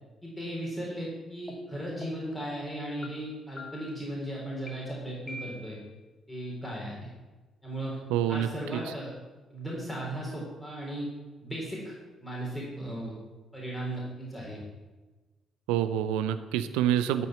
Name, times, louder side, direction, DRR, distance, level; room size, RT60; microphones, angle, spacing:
voice 1, 0.2-5.8 6.3-7.1 7.6-8.0 8.3-9.1 9.5-11.1 11.4-11.9 12.2-13.2 13.5-14.6, right 1 dB, 10° left, -4 dB, 4.0 m, -36 dB
sound 1, 1.5-1.6 2.0-2.4 3.0-3.1 3.6-4.0 4.7-4.8 5.3-5.9, left 1 dB, 30° left, 1.5 m, -44 dB
voice 2, 8.1-8.5 15.7-17.3, right 11 dB, 70° right, 11 dB, 0.5 m, -26 dB
13.0 x 5.7 x 6.0 m, 1.2 s
figure-of-eight pair, 45°, 0 cm